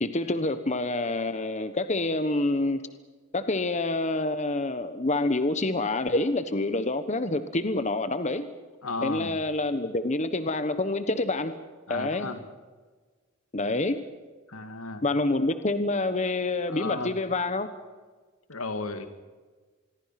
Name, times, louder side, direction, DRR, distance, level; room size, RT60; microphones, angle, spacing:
voice 1, 0.0-2.8 3.3-8.5 9.0-11.5 11.9-12.3 13.5-14.0 15.0-17.7, left 2 dB, 35° left, 10 dB, 1.2 m, -27 dB
voice 2, 8.8-9.4 11.9-12.4 14.5-15.0 16.7-17.1 18.5-19.1, left 3 dB, 90° left, 8 dB, 2.4 m, -34 dB
27.0 x 22.0 x 5.9 m, 1.4 s
head